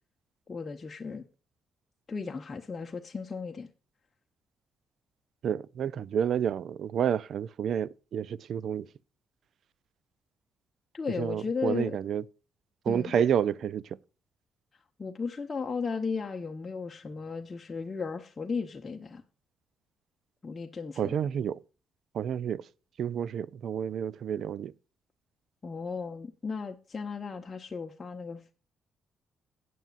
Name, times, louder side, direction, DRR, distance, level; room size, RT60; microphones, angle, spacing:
voice 1, 0.5-1.3 2.1-3.7 10.9-12.0 12.9-13.2 15.0-19.2 20.4-21.1 25.6-28.5, left 5 dB, 30° left, 1.0 m, -35 dB
voice 2, 5.4-8.9 11.2-12.2 12.9-14.0 21.0-21.6 22.1-22.7 23.0-24.7, right 8 dB, 65° right, 0.4 m, -30 dB
15.5 x 9.4 x 2.5 m
cardioid pair, 90°, 0 cm